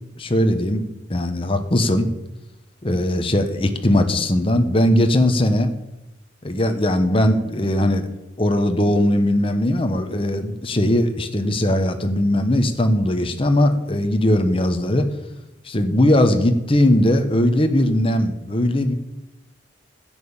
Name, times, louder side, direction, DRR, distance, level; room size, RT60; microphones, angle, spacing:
voice 1, 0.2-0.8 1.1-2.1 2.8-5.7 6.4-8.1 8.4-15.1 15.6-18.9, left 1 dB, 30° left, 7 dB, 1.1 m, -19 dB
10.5 x 9.0 x 7.2 m, 0.93 s
head